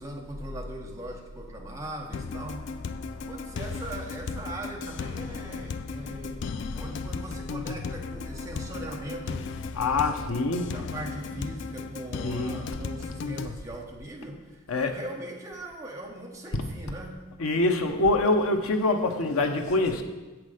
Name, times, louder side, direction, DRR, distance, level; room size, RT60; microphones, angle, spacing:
voice 1, 0.0-2.6 3.2-9.5 10.3-10.4 10.7-17.2, right 1 dB, 15° right, 0 dB, 0.9 m, -40 dB
sound 1, 2.1-13.6, left 4 dB, 60° left, 0.3 m, -36 dB
voice 2, 9.7-10.7 12.2-12.7 14.7-15.0 16.6-16.7 17.4-20.0, left 2 dB, 85° left, 6 dB, 0.8 m, -25 dB
7.3 x 6.0 x 4.9 m, 1.2 s
head